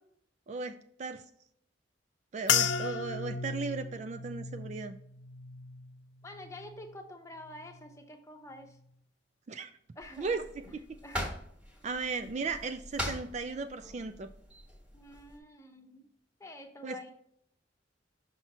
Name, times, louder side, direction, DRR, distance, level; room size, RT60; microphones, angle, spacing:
voice 1, 0.5-1.2 2.3-5.0 9.5-9.7 10.2-10.8 11.8-14.3 16.8-17.0, right 4 dB, 40° right, 8 dB, 0.3 m, -36 dB
sound 1, 2.5-7.0 7.4-8.0 8.6-8.8, left 7 dB, 70° left, 0.4 m, -35 dB
voice 2, 6.2-8.8 10.0-10.4 11.0-11.2 14.9-16.0 16.4-17.1, left 1 dB, 15° left, 4 dB, 0.8 m, -48 dB
sound 2, 10.0-15.4, equal, 5° right, 1.4 m, -42 dB
5.8 x 5.5 x 2.9 m, 0.68 s
head